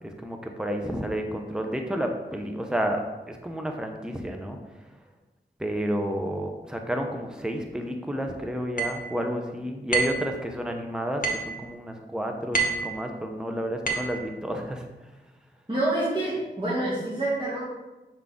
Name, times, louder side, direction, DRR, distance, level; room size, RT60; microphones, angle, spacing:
voice 1, 0.0-4.6 5.6-14.9, equal, 5° right, 3 dB, 0.7 m, -31 dB
sound 1, 8.8-9.0 9.9-10.2 11.2-11.5 12.5-12.9 13.9-14.2, right 4 dB, 50° left, 1.1 m, -26 dB
voice 2, 15.7-17.6, right 1 dB, 25° right, -9 dB, 2.1 m, -27 dB
7.0 x 3.8 x 3.7 m, 1.1 s
cardioid pair, 40°, 19 cm